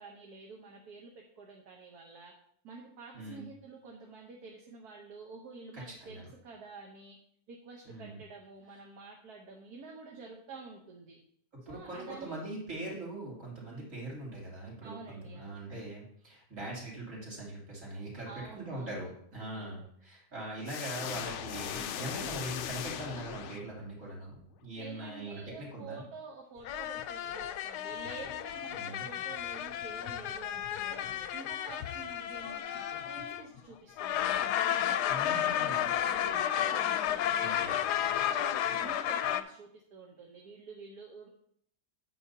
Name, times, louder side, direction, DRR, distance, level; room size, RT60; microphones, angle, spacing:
voice 1, 0.0-2.3 2.6-7.2 7.5-11.2 11.7-12.5 13.7-13.9 14.8-15.6 18.2-19.1 19.5-19.9 24.7-31.1 31.3-34.5 35.2-37.7 38.2-41.3, right 4 dB, 75° right, 0 dB, 1.5 m, -49 dB
voice 2, 5.9-6.3 7.8-8.2 11.7-26.0 28.7-29.1 35.1-35.9 37.4-37.8, right 1 dB, 50° right, -5 dB, 3.5 m, -42 dB
sound 1, 20.6-24.0, left 9 dB, 70° left, 0.7 m, -38 dB
sound 2, 26.6-33.6 34.0-39.4, left 10 dB, 85° left, 1.2 m, -32 dB
9.0 x 8.7 x 2.8 m, 0.68 s
omnidirectional pair, 1.7 m